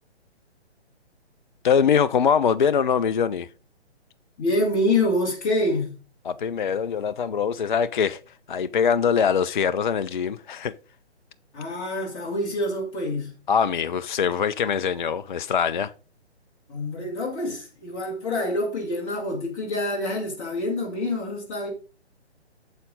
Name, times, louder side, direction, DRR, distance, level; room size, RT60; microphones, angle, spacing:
voice 1, 1.6-3.5 6.3-8.2 8.5-10.7 13.5-15.9, left 7 dB, 45° left, 0.4 m, -23 dB
voice 2, 4.4-5.9 11.5-13.3 16.7-21.7, left 1 dB, 20° left, 2.0 m, -26 dB
9.4 x 7.1 x 3.9 m
figure-of-eight pair, 135°, 34 cm